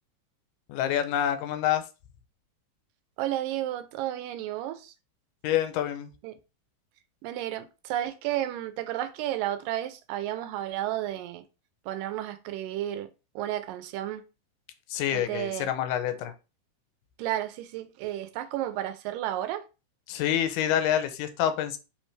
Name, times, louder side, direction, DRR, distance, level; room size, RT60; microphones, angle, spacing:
voice 1, 0.7-1.8 5.4-6.1 14.9-16.3 20.1-21.8, left 10 dB, 85° left, 2.2 m, -27 dB
voice 2, 3.2-4.9 6.2-6.3 7.2-11.4 11.9-13.1 13.4-14.2 15.1-15.7 17.2-19.6, right 13 dB, 85° right, 2.3 m, -32 dB
4.8 x 3.2 x 3.2 m
omnidirectional pair, 3.8 m